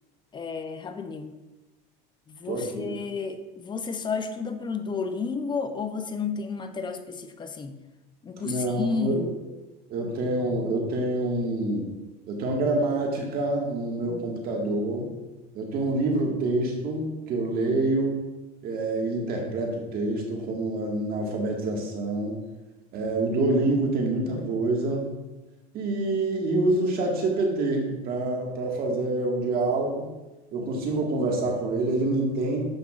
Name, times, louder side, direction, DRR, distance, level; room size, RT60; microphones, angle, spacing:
voice 1, 0.3-1.3 2.3-7.8 8.2-9.4 14.1-14.3, left 5 dB, 25° left, 8 dB, 0.6 m, -32 dB
voice 2, 2.5-2.9 8.4-9.3 9.9-11.9 12.3-15.1 15.5-18.2 18.6-22.4 22.9-25.1 25.7-30.1 30.5-32.6, right 2 dB, 50° right, 0 dB, 1.8 m, -26 dB
9.4 x 6.1 x 2.5 m, 1.1 s
supercardioid pair, 125°, 20 cm